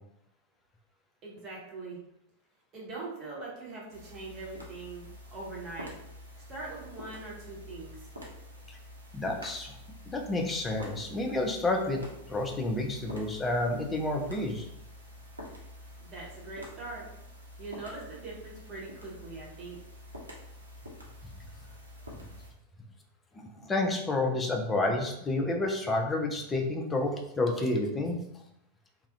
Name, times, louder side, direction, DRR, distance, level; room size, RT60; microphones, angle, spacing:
voice 1, 1.2-2.0 2.7-5.9 6.5-8.0 16.0-17.1 17.6-19.8, right 3 dB, 30° right, -4 dB, 0.9 m, -42 dB
sound 1, 3.9-22.5, left 1 dB, 80° right, 0.6 m, -47 dB
voice 2, 9.1-9.7 10.1-12.0 12.3-14.7 23.3-28.2, left 2 dB, 15° left, 2 dB, 0.4 m, -30 dB
2.3 x 2.0 x 2.5 m, 0.80 s
figure-of-eight pair, 90°, 0 cm